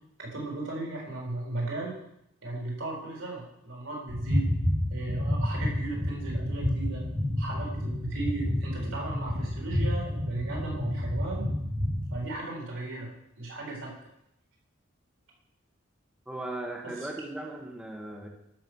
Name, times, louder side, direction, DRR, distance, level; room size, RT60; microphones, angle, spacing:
voice 1, 0.2-2.0 2.4-4.6 4.9-7.1 7.4-11.5 12.1-14.0 16.8-17.1, right 2 dB, 80° right, -2 dB, 4.1 m, -36 dB
sound 1, 4.1-12.2, left 1 dB, 55° right, 2.4 m, -29 dB
voice 2, 16.3-18.3, right 1 dB, 5° right, -1 dB, 1.3 m, -37 dB
12.5 x 5.9 x 6.2 m, 0.78 s
head